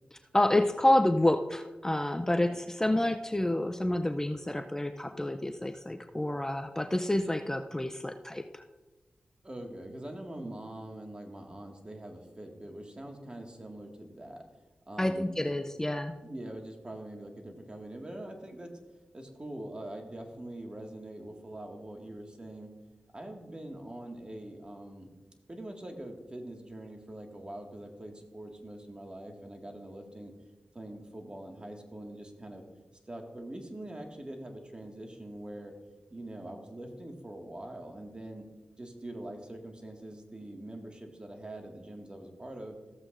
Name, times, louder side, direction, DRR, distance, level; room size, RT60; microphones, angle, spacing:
voice 1, 0.1-8.6 15.0-16.2, left 1 dB, 15° left, 7 dB, 0.5 m, -28 dB
voice 2, 2.3-2.6 9.4-14.4 14.9-15.6 16.2-18.7 19.1-22.7 23.1-25.1 25.5-30.3 30.7-32.6 33.1-35.7 36.1-38.5 38.8-42.8, right 1 dB, 30° right, 2 dB, 1.9 m, -43 dB
14.5 x 7.8 x 2.6 m, 1.2 s
cardioid pair, 45°, 3 cm